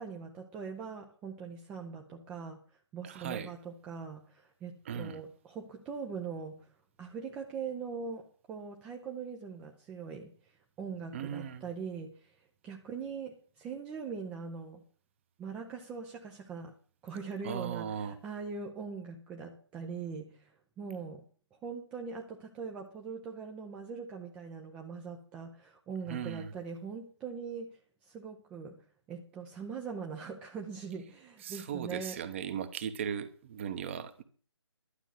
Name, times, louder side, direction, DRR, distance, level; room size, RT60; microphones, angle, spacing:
voice 1, 0.0-2.6 2.9-6.7 7.0-10.3 10.8-12.3 12.6-14.8 15.4-16.7 17.0-21.2 21.5-27.7 28.0-32.2, right 5 dB, 5° right, 1 dB, 0.6 m, -41 dB
voice 2, 3.0-3.5 4.8-5.2 11.1-11.7 17.4-18.2 26.1-26.5 31.4-34.2, right 8 dB, 25° right, 12 dB, 1.0 m, -37 dB
11.5 x 5.9 x 9.2 m, 0.43 s
figure-of-eight pair, 145°, 15 cm